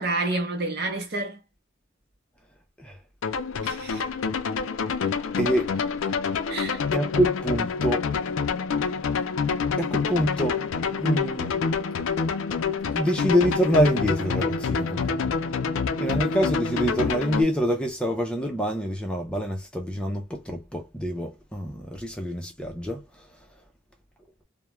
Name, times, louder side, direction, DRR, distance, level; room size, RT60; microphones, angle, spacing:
voice 1, 0.0-1.4 3.6-4.0 6.5-6.8, right 2 dB, 50° right, 0.8 m, -29 dB
sound 1, 3.2-17.4, left 5 dB, 80° left, 0.4 m, -27 dB
voice 2, 5.4-5.7 6.9-8.0 9.8-10.6 10.9-11.6 12.9-15.3 16.0-23.0, equal, 5° left, 0.4 m, -26 dB
2.3 x 2.0 x 3.0 m
head